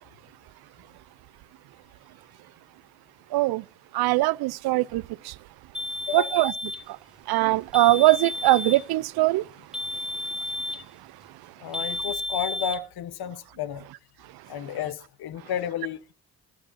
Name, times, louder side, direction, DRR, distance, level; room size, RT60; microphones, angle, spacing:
voice 1, 4.0-4.8 6.1-6.5 7.3-9.4, right 19 dB, 60° right, 0.5 m, -21 dB
sound 1, 5.7-6.9 7.7-8.9 9.7-10.9 11.7-12.8, left 2 dB, ahead, 1.2 m, -32 dB
voice 2, 6.1-6.4 11.6-13.8 14.5-16.1, left 9 dB, 60° left, 1.1 m, -32 dB
21.5 x 11.0 x 2.6 m
hypercardioid pair, 55°, 42 cm